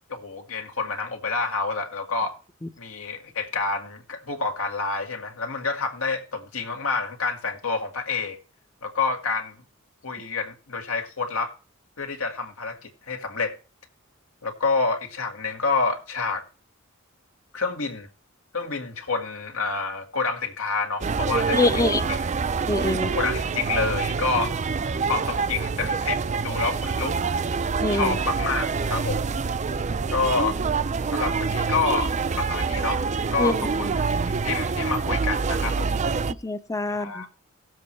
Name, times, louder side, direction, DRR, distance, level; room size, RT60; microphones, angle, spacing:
voice 1, 0.1-2.3 2.8-8.4 8.8-9.6 10.0-11.5 12.0-13.6 14.4-16.4 17.5-18.1 18.5-22.2 23.1-24.5 25.1-27.2 27.9-29.3 30.1-30.6 31.1-33.0 33.3-34.1 34.4-36.0 36.9-37.3, left 4 dB, 75° left, 2.0 m, -28 dB
sound 1, 21.0-36.3, right 5 dB, 35° right, 0.5 m, -26 dB
voice 2, 21.5-22.1 22.7-23.1 27.8-28.2 33.4-33.5 36.3-37.2, left 2 dB, 15° left, 0.7 m, -24 dB
18.5 x 7.5 x 3.3 m
head